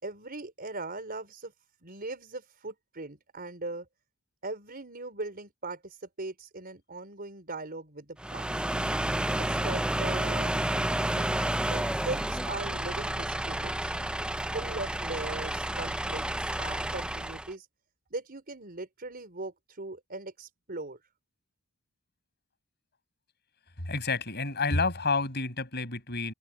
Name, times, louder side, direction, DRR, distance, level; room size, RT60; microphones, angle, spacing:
voice 1, 0.0-1.5 1.8-3.9 4.4-8.6 9.4-13.9 14.5-16.3 16.6-17.7 18.1-21.0, right 2 dB, 45° right, 4.3 m, -40 dB
sound 1, 8.2-17.5, right 1 dB, 5° right, 0.3 m, -30 dB
voice 2, 23.8-26.3, left 3 dB, 50° left, 7.8 m, -29 dB
head